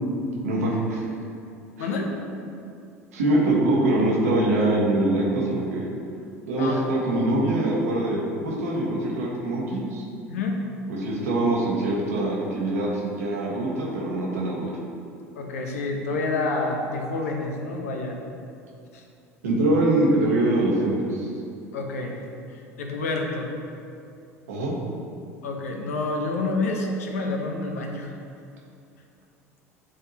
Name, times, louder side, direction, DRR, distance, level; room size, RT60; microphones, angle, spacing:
voice 1, 0.4-1.1 1.8-1.9 3.1-5.9 6.5-10.0 10.9-14.7 19.4-21.3 24.5-24.7, right 1 dB, 75° right, -4 dB, 1.4 m, -23 dB
voice 2, 1.8-2.1 6.6-6.8 10.3-10.6 15.4-18.2 18.9-19.0 21.7-22.2 22.5-23.5 25.4-28.1, left 3 dB, 75° left, 2 dB, 0.8 m, -28 dB
9.7 x 3.6 x 2.8 m, 2.5 s
figure-of-eight pair, 70°, 8 cm